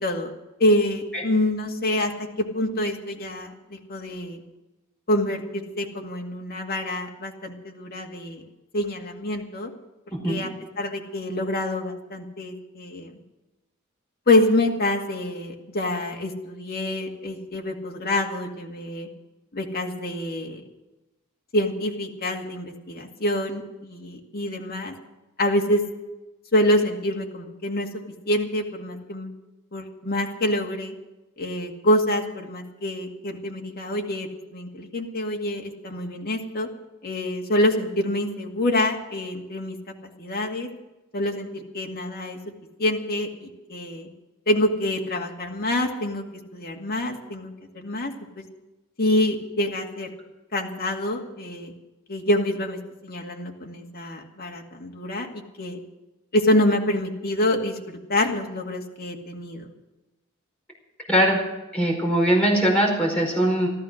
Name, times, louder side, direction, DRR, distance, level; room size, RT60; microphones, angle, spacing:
voice 1, 0.6-2.1 2.4-4.4 5.1-8.4 8.7-9.7 10.3-10.5 10.8-13.2 14.3-19.1 19.5-20.6 21.5-24.9 25.4-25.8 26.5-27.9 28.3-29.3 29.7-30.9 31.4-36.7 37.0-39.8 40.2-40.7 41.1-42.4 42.8-44.1 44.5-46.2 46.5-48.4 49.0-50.1 50.5-51.7 52.1-55.8 56.3-59.7, left 1 dB, 45° left, 1 dB, 2.1 m, -26 dB
voice 2, 10.1-10.4 61.1-61.4 61.7-63.7, right 1 dB, 5° left, -2 dB, 4.9 m, -21 dB
14.5 x 13.5 x 6.5 m, 1.0 s
head